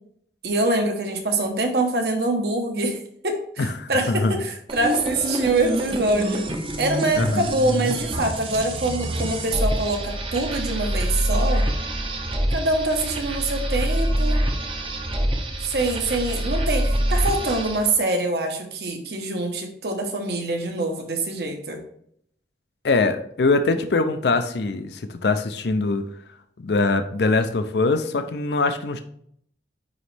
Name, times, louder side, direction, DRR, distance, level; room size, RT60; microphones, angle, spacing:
voice 1, 0.4-3.0 3.2-6.4 6.8-11.6 12.5-14.4 15.6-21.8, right 2 dB, 60° right, 4 dB, 1.1 m, -24 dB
voice 2, 3.6-4.3 7.2-7.5 22.8-26.0 26.6-29.0, left 3 dB, 65° left, 8 dB, 0.5 m, -22 dB
sound 1, 4.7-17.9, right 1 dB, 30° right, 0.7 m, -26 dB
9.2 x 3.1 x 3.3 m, 0.67 s
head